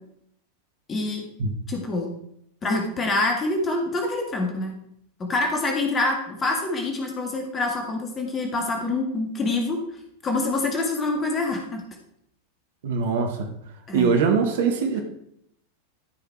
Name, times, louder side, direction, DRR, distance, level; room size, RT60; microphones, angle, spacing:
voice 1, 0.9-1.2 1.7-2.1 2.6-4.7 5.2-9.8 10.2-11.8 13.9-14.1, left 2 dB, 20° left, 2 dB, 1.9 m, -26 dB
voice 2, 12.8-13.5 13.9-15.0, right 5 dB, 55° right, 5 dB, 1.3 m, -22 dB
12.5 x 5.8 x 4.5 m, 0.73 s
figure-of-eight pair, 90°, 0 cm